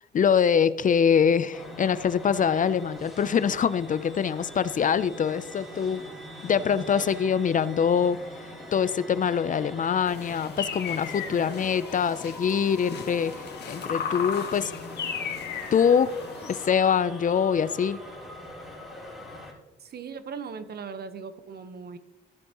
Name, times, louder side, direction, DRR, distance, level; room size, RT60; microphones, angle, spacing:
voice 1, 0.1-6.0 6.4-14.7 15.7-16.1 16.4-18.0, left 7 dB, 40° left, 15 dB, 0.5 m, -24 dB
sound 1, 1.5-19.5, left 1 dB, ahead, 4.1 m, -43 dB
sound 2, 10.1-16.7, left 7 dB, 55° left, 1.6 m, -36 dB
voice 2, 19.8-22.0, right 5 dB, 55° right, 11 dB, 1.1 m, -38 dB
14.5 x 8.4 x 3.0 m, 1.0 s
cardioid pair, 90°, 20 cm